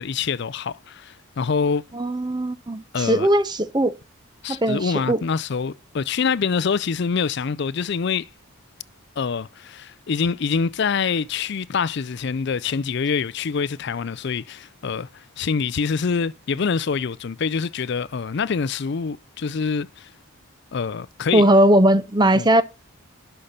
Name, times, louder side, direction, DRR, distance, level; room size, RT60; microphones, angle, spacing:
voice 1, 0.0-1.8 2.9-3.3 4.4-8.3 9.2-20.1 20.7-21.4 22.3-22.5, left 5 dB, 55° left, 0.4 m, -25 dB
voice 2, 1.9-3.9 4.5-5.2 21.3-22.6, right 1 dB, 20° right, 0.7 m, -19 dB
11.5 x 5.7 x 5.5 m
head